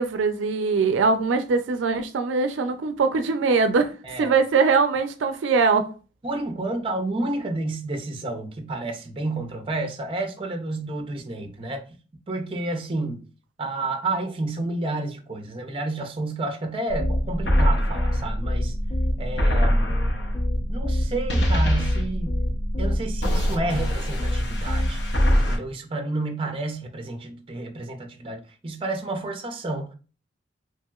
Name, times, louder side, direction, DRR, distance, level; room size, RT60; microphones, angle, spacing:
voice 1, 0.0-3.9 4.2-5.9, right 4 dB, 90° right, 0.4 m, -22 dB
voice 2, 4.0-4.3 6.2-11.8 12.3-13.2 13.6-18.7 19.2-20.0 20.7-22.4 22.8-25.0 25.3-29.9, right 2 dB, 30° right, 0.5 m, -30 dB
sound 1, 16.9-25.6, equal, 65° left, 0.7 m, -23 dB
3.0 x 2.7 x 2.3 m
head